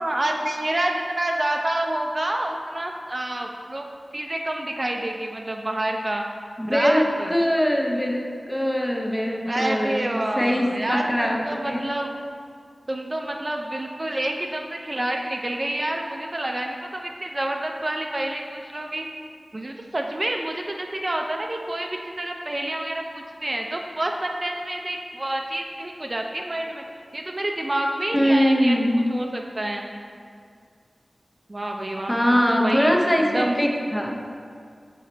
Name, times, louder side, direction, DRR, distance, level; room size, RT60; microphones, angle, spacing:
voice 1, 0.0-3.9 4.1-6.2 6.7-7.3 9.4-12.1 12.9-19.1 19.5-26.8 27.1-28.8 29.1-29.9 31.5-33.6, right 1 dB, 35° right, 2 dB, 0.4 m, -28 dB
voice 2, 6.6-7.0 7.3-10.1 10.4-11.9 28.1-29.0 32.1-34.2, equal, 10° left, 0 dB, 0.7 m, -22 dB
5.8 x 4.2 x 3.9 m, 2.2 s
wide cardioid pair, 65°, 0 cm